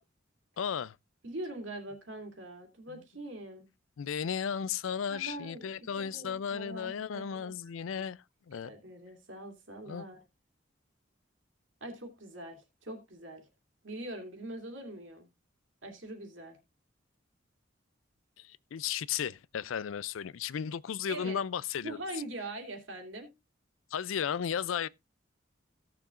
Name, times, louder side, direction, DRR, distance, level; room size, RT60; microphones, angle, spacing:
voice 1, 0.6-1.0 4.0-8.7 9.9-10.1 18.4-22.0 23.9-24.9, left 7 dB, 90° left, 0.4 m, -35 dB
voice 2, 1.2-3.7 5.1-5.7 6.1-7.5 8.6-10.2 11.8-13.4 13.8-15.3 15.8-16.6 21.1-21.4 21.8-23.3, right 1 dB, 70° right, 2.6 m, -43 dB
16.5 x 7.0 x 2.4 m
head